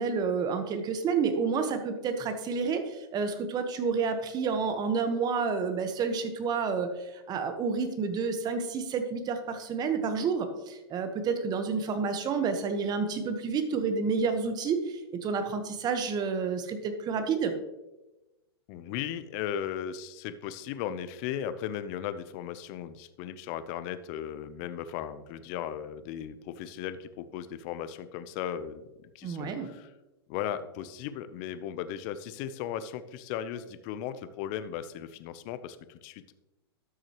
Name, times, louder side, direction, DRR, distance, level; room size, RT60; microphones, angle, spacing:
voice 1, 0.0-17.5 29.2-29.7, right 5 dB, 30° right, 8 dB, 1.2 m, -29 dB
voice 2, 18.7-29.9 30.3-36.3, left 9 dB, 45° left, 12 dB, 0.7 m, -37 dB
13.0 x 6.2 x 3.0 m, 1.0 s
hypercardioid pair, 115°, 14 cm